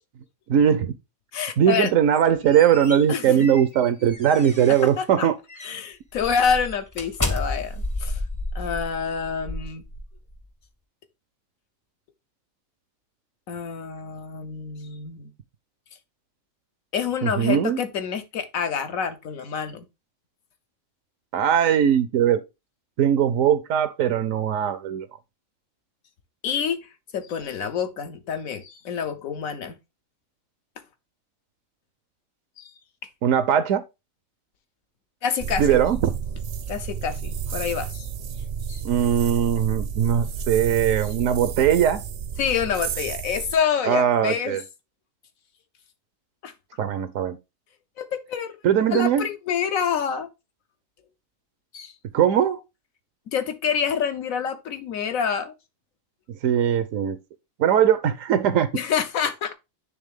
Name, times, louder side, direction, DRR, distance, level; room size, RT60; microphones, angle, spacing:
voice 1, 0.5-0.9 1.6-5.4 17.2-17.8 21.3-22.4 23.0-25.1 33.2-33.8 35.6-36.1 38.8-42.0 43.8-44.6 46.8-47.4 48.6-49.3 52.1-52.6 56.3-57.2 57.6-58.7, right 9 dB, 80° right, 1.0 m, -20 dB
voice 2, 1.3-1.9 3.1-3.5 5.0-5.3 5.6-8.2 8.5-9.8 13.5-15.3 16.9-19.9 26.4-26.8 27.1-29.8 32.6-32.7 35.2-35.8 36.7-38.1 38.7-38.8 42.4-44.6 46.4-46.5 48.0-48.5 48.9-50.3 51.7-51.9 53.3-55.5 58.7-59.5, left 7 dB, 90° left, 1.3 m, -27 dB
sound 1, 2.1-5.0 5.5-5.7 6.1-10.4, left 2 dB, 25° left, 0.5 m, -32 dB
sound 2, 35.4-43.6, right 6 dB, 60° right, 0.7 m, -31 dB
9.6 x 3.4 x 3.5 m
omnidirectional pair, 1.4 m